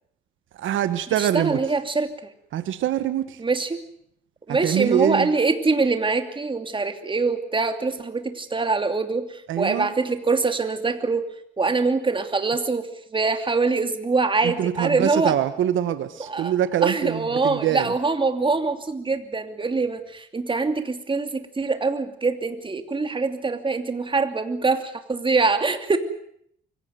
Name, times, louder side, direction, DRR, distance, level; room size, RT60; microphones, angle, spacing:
voice 1, 0.5-1.6 2.5-3.4 4.5-5.3 9.5-9.9 14.4-17.9, right 11 dB, 75° right, 12 dB, 1.3 m, -24 dB
voice 2, 1.2-2.1 3.4-3.8 4.5-11.2 11.6-15.3 16.3-16.5 16.8-26.0, right 4 dB, 25° right, 7 dB, 2.8 m, -24 dB
24.5 x 17.0 x 9.3 m, 0.70 s
cardioid pair, 90°, 20 cm